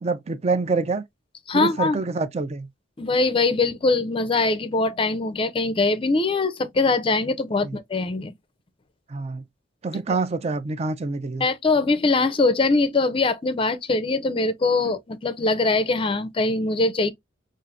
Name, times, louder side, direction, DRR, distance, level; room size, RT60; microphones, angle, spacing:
voice 1, 0.0-1.0 1.5-2.7 7.6-7.8 9.1-9.4 9.8-11.4, right 3 dB, 35° right, 0.4 m, -26 dB
voice 2, 1.5-2.0 3.0-8.3 11.4-17.1, left 3 dB, 25° left, 0.5 m, -22 dB
5.4 x 2.5 x 2.4 m
head